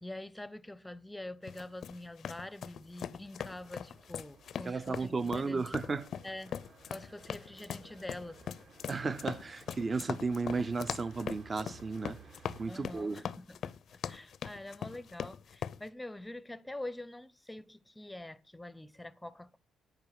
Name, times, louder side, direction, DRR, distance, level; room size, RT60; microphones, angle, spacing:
voice 1, 0.0-5.7 6.2-6.6 6.9-8.4 12.7-13.6 14.1-19.6, left 1 dB, 10° left, 0.7 m, -45 dB
sound 1, 1.5-15.8, left 8 dB, 60° left, 0.5 m, -41 dB
sound 2, 3.5-13.1, right 5 dB, 60° right, 3.2 m, -57 dB
voice 2, 4.6-6.1 8.9-12.2 12.6-13.2, right 4 dB, 35° right, 0.7 m, -34 dB
10.5 x 9.1 x 4.8 m
cardioid pair, 90°, 0 cm